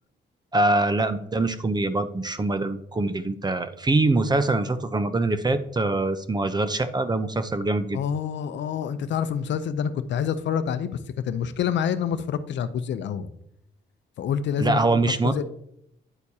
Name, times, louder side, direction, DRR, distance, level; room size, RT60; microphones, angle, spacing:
voice 1, 0.5-8.0 14.6-15.4, right 2 dB, 20° right, 11 dB, 0.7 m, -24 dB
voice 2, 7.9-11.0 11.2-13.3 14.2-15.4, left 8 dB, 65° left, 12 dB, 0.6 m, -27 dB
9.9 x 8.2 x 2.8 m, 0.77 s
cardioid pair, 90°, 20 cm